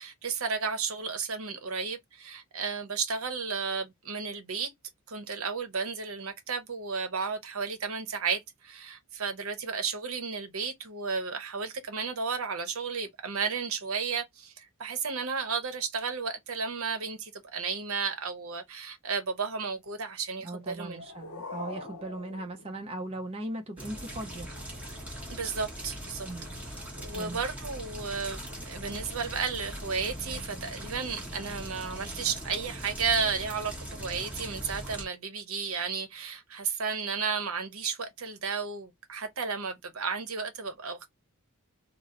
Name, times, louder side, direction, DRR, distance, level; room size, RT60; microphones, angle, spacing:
voice 1, 0.0-4.7 5.1-21.0 25.3-26.3 26.7-41.1, right 5 dB, 70° right, 0.8 m, -33 dB
voice 2, 20.4-24.5 26.2-26.6 27.1-27.4, right 1 dB, 25° right, 0.5 m, -38 dB
sound 1, 20.6-23.5, left 3 dB, 70° left, 0.7 m, -44 dB
sound 2, 23.8-35.1, equal, 5° right, 0.9 m, -40 dB
2.8 x 2.0 x 3.6 m
head